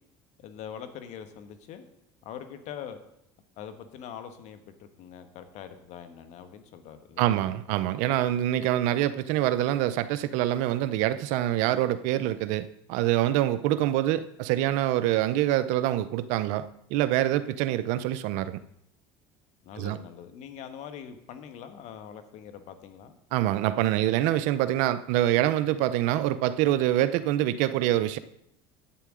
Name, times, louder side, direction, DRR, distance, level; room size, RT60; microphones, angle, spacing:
voice 1, 0.4-1.8 2.2-3.0 3.6-7.4 19.6-23.2, left 8 dB, 60° left, 9 dB, 1.3 m, -43 dB
voice 2, 7.2-18.6 19.8-20.0 23.3-28.2, right 13 dB, 75° right, 15 dB, 0.6 m, -25 dB
11.5 x 8.5 x 3.7 m, 0.77 s
supercardioid pair, 90°, 13 cm